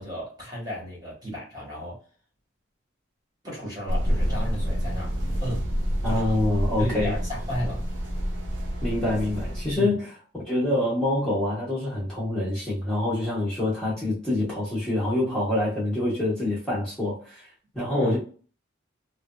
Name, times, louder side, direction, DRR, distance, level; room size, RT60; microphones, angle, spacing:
voice 1, 0.0-2.0 3.4-5.1 5.4-5.7 6.0-6.2 6.8-7.8 9.7-10.0 17.9-18.2, equal, 20° right, 1.4 m, -33 dB
sound 1, 3.9-9.8, equal, 75° right, 0.8 m, -28 dB
voice 2, 6.0-7.1 8.8-10.1 10.5-17.4 17.7-18.2, left 1 dB, 5° left, 1.1 m, -26 dB
3.2 x 2.6 x 2.3 m
head